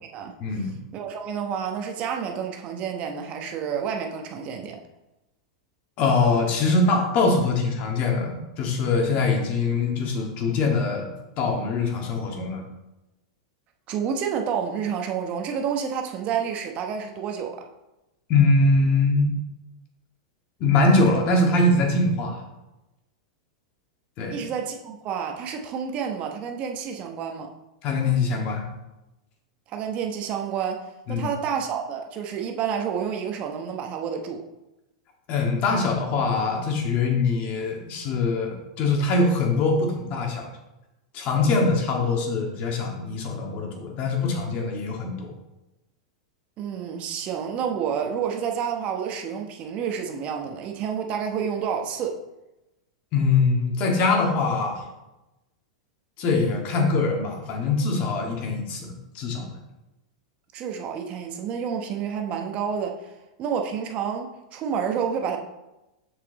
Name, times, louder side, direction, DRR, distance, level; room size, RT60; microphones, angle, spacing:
voice 1, 0.4-0.7 6.0-11.1 11.4-12.6 18.3-19.3 20.6-22.4 24.2-24.4 27.8-28.7 31.1-31.3 35.3-40.5 41.1-45.3 53.1-54.8 56.2-59.5, left 3 dB, 45° left, 1 dB, 2.0 m, -23 dB
voice 2, 0.9-4.8 13.9-17.6 24.3-27.5 29.7-34.5 46.6-52.2 60.5-65.4, right 7 dB, 40° right, 3 dB, 1.0 m, -29 dB
6.8 x 5.9 x 4.0 m, 0.97 s
hypercardioid pair, 115°, 3 cm